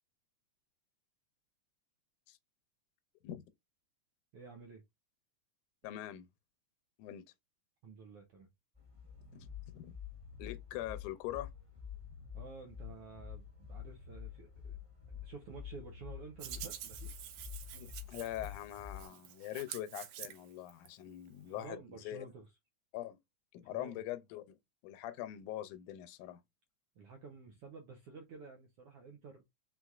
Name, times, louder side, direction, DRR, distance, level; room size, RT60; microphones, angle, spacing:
voice 1, 4.3-4.8 7.8-8.5 12.3-14.8 15.2-17.1 21.5-22.5 23.6-24.0 27.0-29.4, right 4 dB, 70° right, 1.4 m, -51 dB
voice 2, 5.8-6.3 7.0-7.3 9.3-9.5 9.7-10.0 10.4-11.5 17.7-22.3 22.9-23.2 23.5-24.6 24.8-26.4, left 13 dB, 85° left, 2.0 m, -43 dB
sound 1, 8.7-19.1, left 8 dB, 15° right, 1.7 m, -48 dB
Hands, 16.4-20.9, right 11 dB, 90° right, 2.2 m, -48 dB
4.6 x 3.9 x 2.4 m
omnidirectional pair, 3.5 m